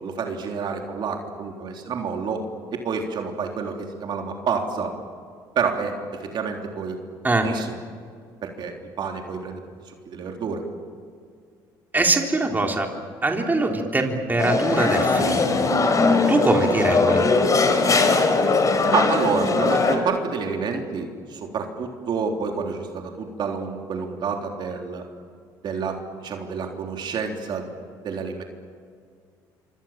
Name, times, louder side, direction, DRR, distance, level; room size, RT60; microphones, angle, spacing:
voice 1, 0.0-2.4 2.7-4.9 5.6-7.0 7.4-7.7 8.4-9.6 9.9-10.6 17.0-17.1 18.9-25.1 25.6-27.8 28.0-28.4, right 5 dB, 55° right, 2 dB, 3.7 m, -28 dB
voice 2, 11.9-12.9 13.2-15.7 16.3-17.3, right 2 dB, 20° right, 2 dB, 3.8 m, -22 dB
sound 1, 14.4-20.0, left 3 dB, 40° left, 4.6 m, -20 dB
27.5 x 25.5 x 7.5 m, 2.1 s
supercardioid pair, 80°, 9 cm